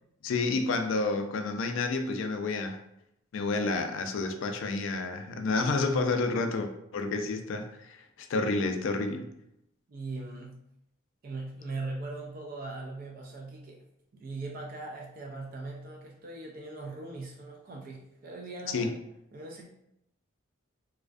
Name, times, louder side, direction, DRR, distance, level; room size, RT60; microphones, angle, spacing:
voice 1, 0.2-2.8 3.3-9.3 18.7-19.0, left 3 dB, 70° left, 6 dB, 0.3 m, -30 dB
voice 2, 9.9-10.6 11.2-13.8 14.1-18.9 19.3-19.7, right 3 dB, 45° right, 0 dB, 0.3 m, -40 dB
2.4 x 2.1 x 2.4 m, 0.79 s
head